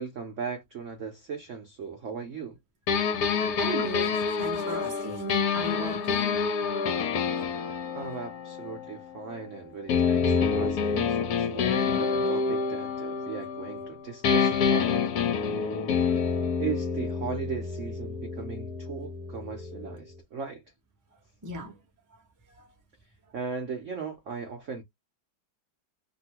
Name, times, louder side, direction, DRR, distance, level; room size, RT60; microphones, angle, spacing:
voice 1, 0.0-2.6 7.9-15.1 16.6-20.6 23.3-24.8, right 6 dB, 80° right, 0.6 m, -38 dB
sound 1, 2.9-9.4 9.9-13.9 14.2-20.0, left 5 dB, 65° left, 1.0 m, -27 dB
voice 2, 3.6-6.4 21.4-21.7, right 2 dB, 25° right, 0.4 m, -35 dB
2.9 x 2.6 x 2.8 m
omnidirectional pair, 2.2 m